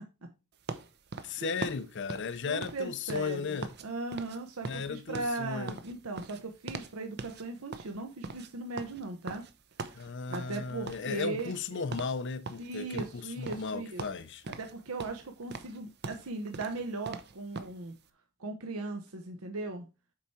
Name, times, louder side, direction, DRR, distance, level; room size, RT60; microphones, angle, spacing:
sound 1, 0.7-3.9 4.1-4.4 4.6-6.9 7.2-7.4 7.7-10.6 10.9-11.7 11.9-12.2 12.4-13.7 14.0-14.7 15.0-17.8, right 4 dB, 50° right, 0.7 m, -41 dB
voice 1, 1.2-3.7 4.7-5.8 9.9-14.4, left 5 dB, 55° left, 0.6 m, -36 dB
voice 2, 2.4-9.4 9.9-11.8 12.6-14.0 14.6-17.9 18.4-19.9, right 2 dB, 75° right, 0.9 m, -38 dB
7.5 x 4.7 x 4.2 m
head